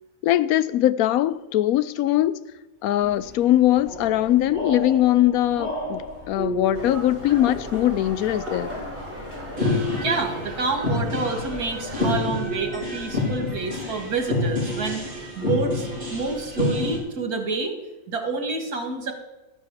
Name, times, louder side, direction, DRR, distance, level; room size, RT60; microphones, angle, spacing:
voice 1, 0.2-2.4 2.8-6.0 6.3-8.7, left 13 dB, 75° left, 1.0 m, -21 dB
sound 1, 3.0-17.0, left 2 dB, 40° right, 4.1 m, -29 dB
sound 2, 6.7-12.1, equal, 10° right, 4.5 m, -36 dB
voice 2, 9.9-17.7 18.1-19.1, right 4 dB, 80° right, 2.2 m, -28 dB
12.0 x 6.3 x 7.2 m
omnidirectional pair, 1.6 m